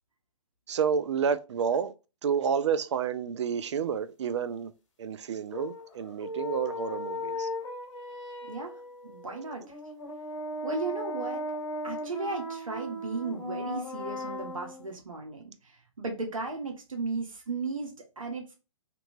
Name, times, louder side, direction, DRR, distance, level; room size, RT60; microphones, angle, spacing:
voice 1, 0.7-1.9 2.2-4.7 5.0-7.5, right 7 dB, 60° right, 0.4 m, -29 dB
sound 1, 5.5-14.9, left 1 dB, 60° left, 0.9 m, -37 dB
voice 2, 8.5-9.8 10.6-18.5, right 3 dB, 80° right, 0.8 m, -36 dB
2.8 x 2.3 x 2.6 m
figure-of-eight pair, 130°, 17 cm